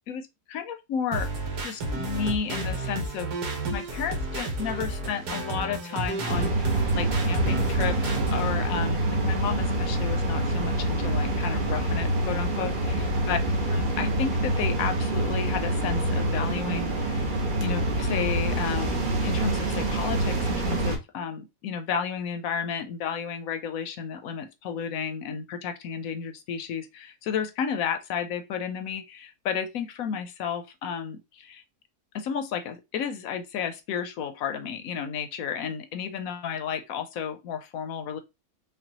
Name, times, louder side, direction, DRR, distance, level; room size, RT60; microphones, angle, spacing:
voice 1, 0.1-1.3 1.6-3.3 3.7-13.4 13.7-17.2 17.6-31.6 32.1-38.2, left 7 dB, 70° left, 1.0 m, -32 dB
sound 1, 1.1-8.5, right 3 dB, 80° right, 1.6 m, -31 dB
sound 2, 6.3-21.0, right 1 dB, 40° right, 0.8 m, -26 dB
5.3 x 2.3 x 2.9 m
omnidirectional pair, 1.7 m